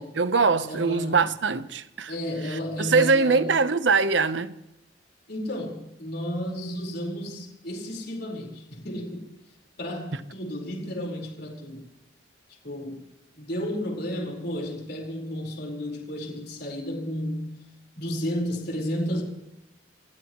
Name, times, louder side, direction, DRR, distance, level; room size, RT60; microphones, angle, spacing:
voice 1, 0.0-2.1 2.5-4.5, right 4 dB, 70° right, 1.0 m, -23 dB
voice 2, 0.6-1.3 2.1-3.5 5.3-9.3 9.8-11.9 12.6-13.0 13.4-17.6 18.0-19.2, equal, 55° left, 4.6 m, -32 dB
27.0 x 16.5 x 3.1 m
head